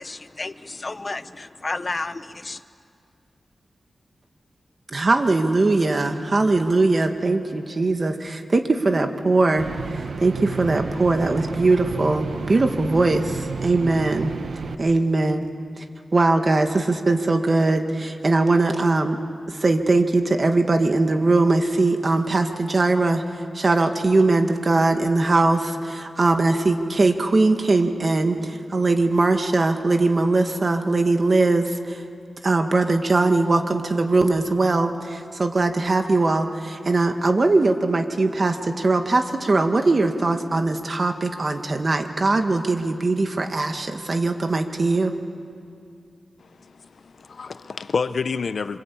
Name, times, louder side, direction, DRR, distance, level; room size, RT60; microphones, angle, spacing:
voice 1, 0.0-2.6, left 3 dB, 35° left, 11 dB, 0.9 m, -32 dB
voice 2, 4.9-9.7 10.2-14.3 14.8-15.5 15.8-15.9 16.1-19.2 19.6-23.2 23.5-32.0 32.4-45.1, right 3 dB, 40° right, 5 dB, 1.9 m, -20 dB
sound 1, 9.6-14.8, right 5 dB, 80° right, 1.0 m, -31 dB
voice 3, 46.4-48.8, left 5 dB, 65° left, 12 dB, 0.7 m, -29 dB
26.5 x 26.0 x 8.6 m, 2.4 s
wide cardioid pair, 110°, 0 cm